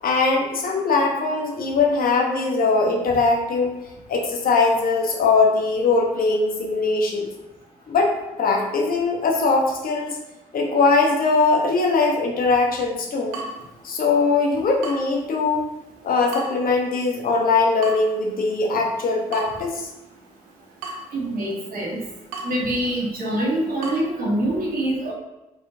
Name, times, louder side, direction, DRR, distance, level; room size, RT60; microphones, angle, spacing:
voice 1, 0.0-3.7 4.1-7.3 7.9-10.2 10.5-13.4 13.8-15.7 16.0-19.9, left 3 dB, 55° left, 0 dB, 1.1 m, -21 dB
Water tap faucet / Drip, 13.3-24.0, right 3 dB, 85° right, 0.6 m, -40 dB
voice 2, 21.1-22.0 22.4-25.1, right 1 dB, 55° right, -5 dB, 1.5 m, -25 dB
4.3 x 4.2 x 2.7 m, 1.0 s
hypercardioid pair, 45°, 18 cm